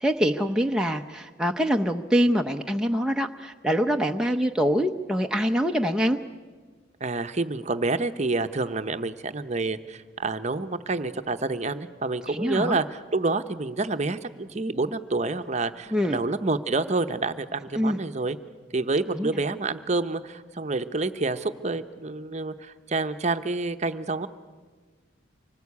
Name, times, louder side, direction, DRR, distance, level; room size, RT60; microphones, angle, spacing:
voice 1, 0.0-6.2 12.3-12.8 15.9-16.2 17.7-18.0 19.1-19.3, equal, 5° right, 3 dB, 0.6 m, -24 dB
voice 2, 7.0-18.4 18.7-24.3, right 3 dB, 35° right, 9 dB, 0.8 m, -28 dB
25.0 x 19.0 x 8.4 m, 1.5 s
head